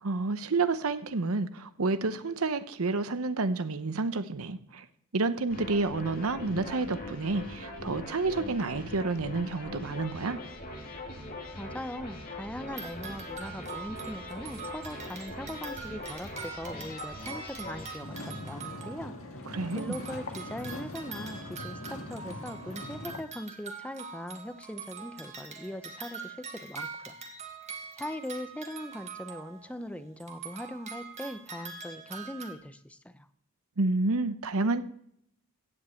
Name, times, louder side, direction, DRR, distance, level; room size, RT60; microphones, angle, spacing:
voice 1, 0.0-4.9 5.1-10.4 19.5-20.0 33.8-34.8, right 3 dB, 70° right, 11 dB, 0.8 m, -29 dB
sound 1, 5.5-18.0, left 2 dB, 40° left, 2.4 m, -41 dB
voice 2, 11.6-19.1 19.7-27.1 28.0-33.3, left 1 dB, 5° left, 10 dB, 0.7 m, -40 dB
sound 2, 12.7-19.4 19.7-29.9 30.2-32.6, right 5 dB, 30° right, 1.6 m, -44 dB
sound 3, 18.0-23.2, left 2 dB, 70° left, 1.7 m, -41 dB
15.5 x 5.4 x 8.4 m, 0.71 s
head